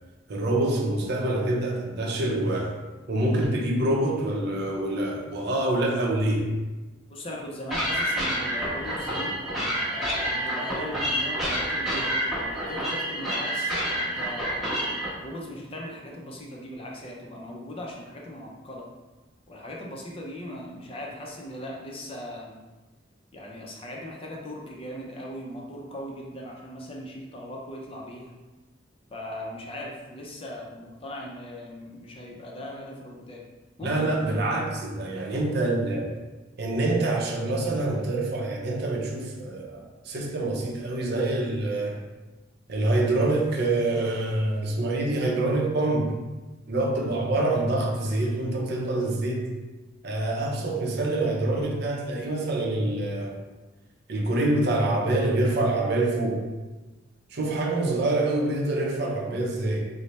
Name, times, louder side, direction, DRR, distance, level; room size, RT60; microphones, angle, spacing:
voice 1, 0.3-2.7 3.1-6.5 33.8-36.1 36.6-42.0 42.7-46.1 46.7-49.5 50.0-53.4 54.1-56.4 57.3-59.9, right 2 dB, 60° right, 0 dB, 0.6 m, -26 dB
voice 2, 7.1-9.4 9.9-14.7 15.2-18.9 19.5-22.6 23.3-28.3 29.1-33.4 33.8-34.5, equal, 30° left, -1 dB, 0.5 m, -39 dB
sound 1, 7.7-15.1, equal, ahead, 0.9 m, -28 dB
3.2 x 2.0 x 4.0 m, 1.2 s
head